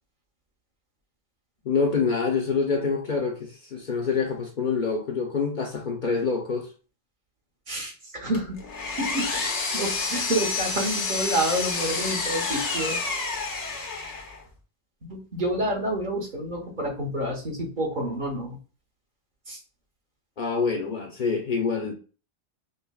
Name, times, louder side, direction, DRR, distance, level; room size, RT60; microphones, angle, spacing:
voice 1, 1.6-6.7 20.4-21.9, left 5 dB, 55° left, 0.6 m, -26 dB
voice 2, 7.7-8.6 9.0-13.0 15.0-18.6 19.5-19.6, right 1 dB, 50° right, 1.0 m, -29 dB
Power tool, 8.3-14.4, left 4 dB, 90° left, 1.1 m, -29 dB
5.3 x 2.1 x 2.2 m
omnidirectional pair, 1.1 m